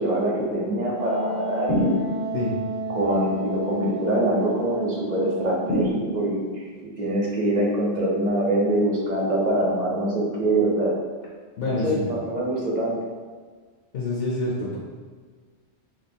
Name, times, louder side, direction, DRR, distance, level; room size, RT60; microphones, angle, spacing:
voice 1, 0.0-1.9 2.9-6.6 7.0-10.9 11.6-13.0, right 1 dB, 40° right, -3 dB, 0.9 m, -24 dB
Wind instrument woodwind instrument, 1.0-6.5, right 2 dB, 80° right, 0.9 m, -32 dB
sound 1, 1.7-2.5 5.7-6.6, equal, 5° left, 0.6 m, -26 dB
voice 2, 11.6-12.1 13.9-14.8, left 2 dB, 60° left, -4 dB, 0.8 m, -27 dB
3.1 x 2.9 x 4.3 m, 1.5 s
omnidirectional pair, 1.2 m